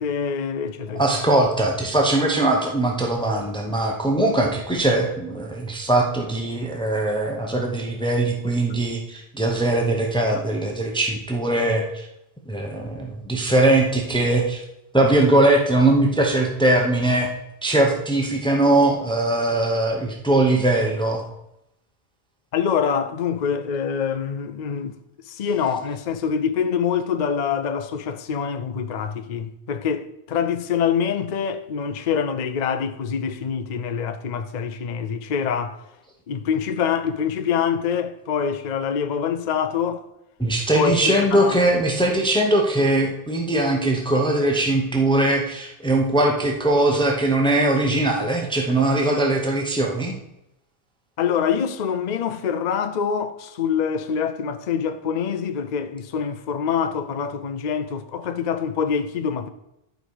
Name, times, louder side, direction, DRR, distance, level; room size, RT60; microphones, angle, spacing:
voice 1, 0.0-1.0 22.5-25.0 25.3-35.8 36.3-40.1 40.7-41.6 51.2-59.5, left 7 dB, 50° left, 0.6 m, -25 dB
voice 2, 0.9-12.1 12.5-14.6 14.9-17.3 17.6-21.2 40.4-50.1, right 2 dB, 5° left, 1.0 m, -21 dB
11.0 x 5.2 x 4.8 m
omnidirectional pair, 1.0 m